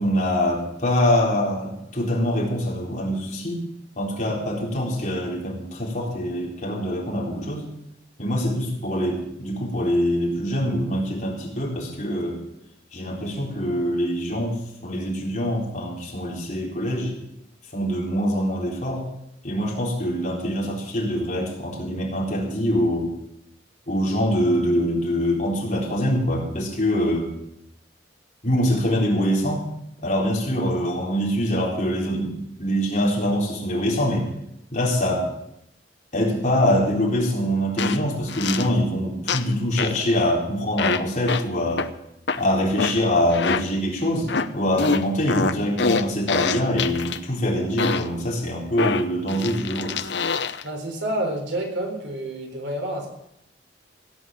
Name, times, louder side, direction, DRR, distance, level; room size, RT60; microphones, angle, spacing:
voice 1, 0.0-3.7 4.0-7.6 8.2-12.4 12.9-14.6 14.8-17.1 17.7-19.0 19.4-23.1 23.9-27.3 28.4-29.6 30.0-34.3 34.7-35.3 36.1-41.9 42.4-50.0, equal, 40° left, -2 dB, 4.0 m, -24 dB
sound 1, 37.8-38.0 38.3-38.7 39.3-39.5 39.8-40.0 40.8-41.0 41.3-41.4 41.8-41.9 42.3-42.4 42.8-43.0 43.3-43.6 44.3-44.5 44.8-47.2 47.8-48.1 48.8-50.6, left 4 dB, 70° left, 0.8 m, -25 dB
voice 2, 50.6-53.1, right 1 dB, 80° right, 2 dB, 4.2 m, -28 dB
16.5 x 8.2 x 7.7 m, 0.81 s
head